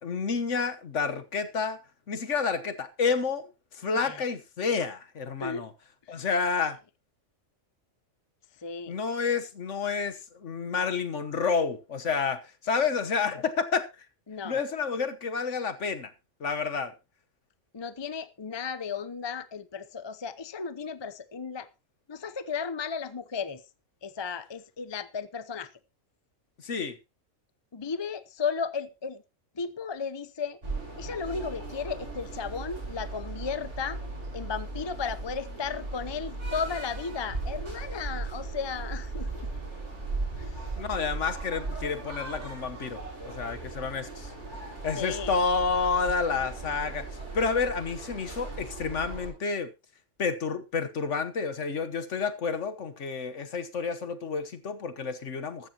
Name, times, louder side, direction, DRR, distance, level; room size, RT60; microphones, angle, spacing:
voice 1, 0.0-1.8 2.1-5.7 6.1-6.8 8.9-13.8 14.4-16.1 16.4-16.9 26.6-27.0 40.8-44.3 44.8-47.1 47.3-49.7 50.2-55.7, left 5 dB, 60° left, 1.5 m, -29 dB
voice 2, 3.9-4.2 5.4-5.7 6.1-6.2 8.6-8.9 14.3-14.6 17.7-21.7 22.1-23.6 24.0-25.7 27.7-29.2 29.5-30.6 31.0-34.0 34.3-39.5 40.3-40.6 44.9-45.3, left 5 dB, 25° left, 0.6 m, -34 dB
sound 1, 30.6-49.3, right 3 dB, 55° right, 6.2 m, -37 dB
14.5 x 13.0 x 2.9 m
omnidirectional pair, 1.4 m